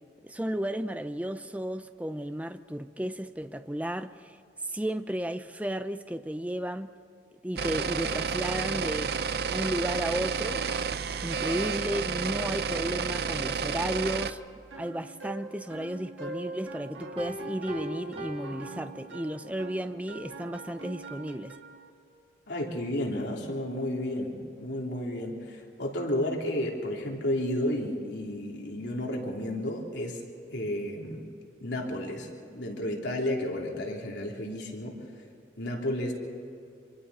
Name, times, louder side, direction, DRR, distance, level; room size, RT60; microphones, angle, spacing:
voice 1, 0.2-4.4 4.7-6.9 7.4-9.1 9.5-10.6 11.2-14.4 14.8-21.5, right 1 dB, 10° right, 0.6 m, -33 dB
sound 1, 7.6-14.3, right 6 dB, 55° right, 0.6 m, -30 dB
sound 2, 14.2-21.9, right 3 dB, 80° right, 1.7 m, -43 dB
Piano, 17.2-19.6, equal, 30° right, 1.6 m, -41 dB
voice 2, 22.5-30.2 30.5-31.2 31.6-35.0 35.6-36.1, left 1 dB, 70° left, 3.2 m, -32 dB
26.0 x 25.0 x 4.2 m
head